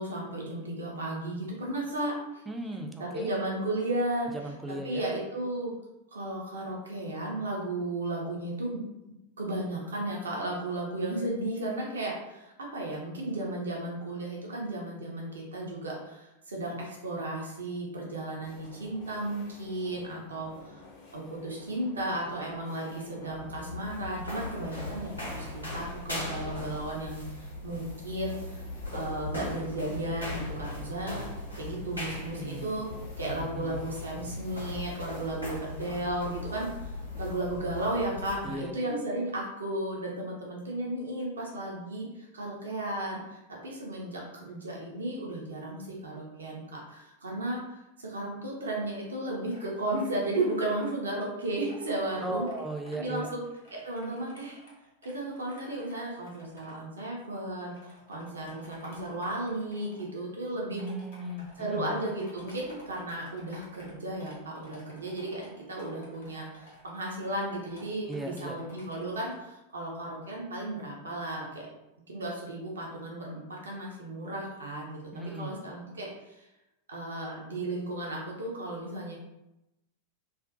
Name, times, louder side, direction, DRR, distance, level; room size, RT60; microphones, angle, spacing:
voice 1, 0.0-2.4 3.0-4.3 4.7-5.7 6.1-8.8 9.4-20.8 21.1-28.6 28.9-31.3 31.6-32.9 33.2-52.5 53.0-53.4 53.8-54.6 55.0-60.8 61.6-65.4 65.7-71.6 72.1-75.0 75.4-76.5 76.9-79.1, right 1 dB, 70° right, -2 dB, 0.5 m, -34 dB
voice 2, 2.5-3.3 4.3-5.0 32.3-33.9 38.4-38.7 52.2-53.3 60.8-62.0 68.1-68.6 75.1-75.6, right 1 dB, 5° right, 2 dB, 0.3 m, -37 dB
sound 1, 18.4-37.5, left 3 dB, 45° left, 0.6 m, -53 dB
sound 2, 23.2-38.5, left 2 dB, 90° left, 0.9 m, -39 dB
sound 3, 49.4-50.9 51.4-53.0 53.4-56.7 57.3-57.4 57.7-60.0 60.8-69.3, left 1 dB, 60° left, 1.0 m, -54 dB
2.4 x 2.1 x 2.5 m, 0.93 s
figure-of-eight pair, 90°, 0 cm